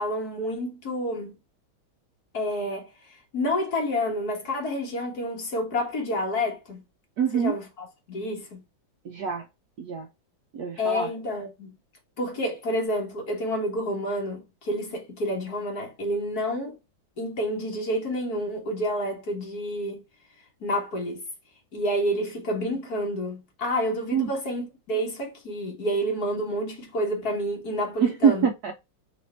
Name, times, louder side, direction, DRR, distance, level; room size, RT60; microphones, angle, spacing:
voice 1, 0.0-1.4 2.3-2.9 3.3-6.8 7.3-8.6 10.8-11.7 12.2-16.8 17.2-20.0 20.6-21.2 21.7-28.5, equal, 50° left, 1.8 m, -29 dB
voice 2, 7.2-7.5 9.0-9.4 9.8-10.1 10.5-11.1 24.1-24.3 28.0-28.7, right 7 dB, 65° right, 1.0 m, -24 dB
3.5 x 3.3 x 4.3 m
omnidirectional pair, 2.2 m